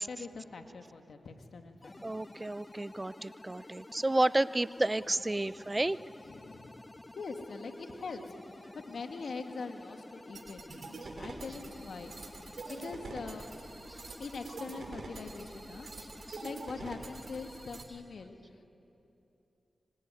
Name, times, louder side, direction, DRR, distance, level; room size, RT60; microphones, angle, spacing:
voice 1, 0.0-2.2 5.4-5.8 6.3-6.7 7.1-12.1 12.7-13.5 14.2-18.6, left 4 dB, 80° left, 5 dB, 2.2 m, -43 dB
sound 1, 1.8-17.8, left 2 dB, 30° left, 0.8 m, -51 dB
voice 2, 2.0-6.0 13.9-14.0 16.3-16.4, right 2 dB, 25° right, 18 dB, 0.6 m, -31 dB
sound 2, 10.3-17.8, right 3 dB, 70° right, 3.6 m, -45 dB
25.0 x 24.5 x 9.4 m, 2.9 s
cardioid pair, 45°, 0 cm